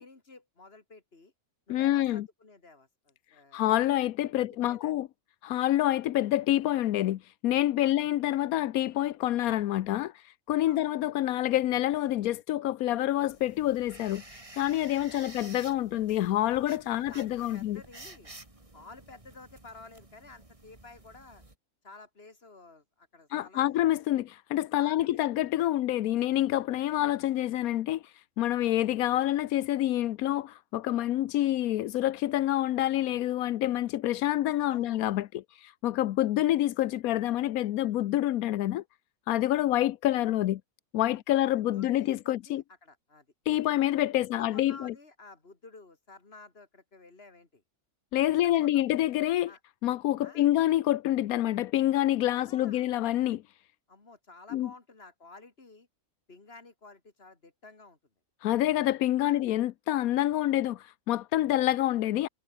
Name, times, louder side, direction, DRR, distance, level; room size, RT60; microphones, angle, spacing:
voice 1, 0.0-1.3 1.7-3.7 4.3-4.9 7.8-7.9 10.7-10.8 15.1-15.3 16.9-18.3 18.7-21.4 21.8-23.9 24.7-25.2 34.7-35.0 41.3-41.4 41.7-43.3 43.6-43.7 44.2-47.6 48.4-48.8 49.5-49.6 50.2-50.5 52.3-52.9 53.9-55.9 56.3-58.0 59.2-59.4, left 3 dB, 45° left, 3.2 m, -52 dB
voice 2, 1.7-2.3 3.5-5.1 5.4-17.8 23.3-38.8 39.3-40.6 40.9-42.6 43.5-44.9 48.1-49.5 49.8-53.4 54.5-54.7 58.4-62.3, left 13 dB, 85° left, 1.1 m, -27 dB
sound 1, 13.2-21.6, right 2 dB, 20° right, 2.6 m, -51 dB
omnidirectional pair, 1.5 m